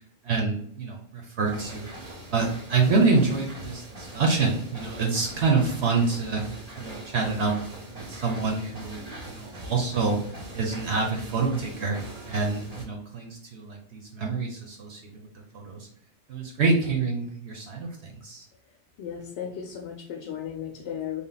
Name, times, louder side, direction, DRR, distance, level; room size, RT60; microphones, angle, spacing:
voice 1, 0.2-1.9 2.3-6.4 6.8-7.5 7.9-10.2 10.5-12.0 12.3-15.1 15.5-15.9 16.3-18.5, right 4 dB, 70° right, 0 dB, 0.9 m, -26 dB
sound 1, 1.4-12.9, right 1 dB, 40° right, 0.7 m, -42 dB
voice 2, 19.0-21.2, left 8 dB, 80° left, 1 dB, 0.9 m, -35 dB
3.5 x 2.3 x 3.9 m, 0.64 s
omnidirectional pair, 1.2 m